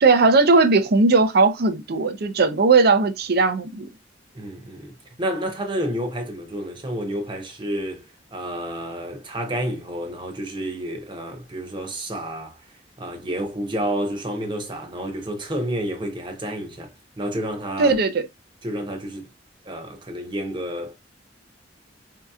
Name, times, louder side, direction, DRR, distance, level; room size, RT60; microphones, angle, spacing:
voice 1, 0.0-3.9 17.8-18.3, right 3 dB, 55° right, 0.5 m, -18 dB
voice 2, 4.3-8.1 8.3-12.6 13.0-18.0 18.6-19.3 19.6-21.0, right 1 dB, 25° right, 0.9 m, -30 dB
4.4 x 2.8 x 2.3 m
head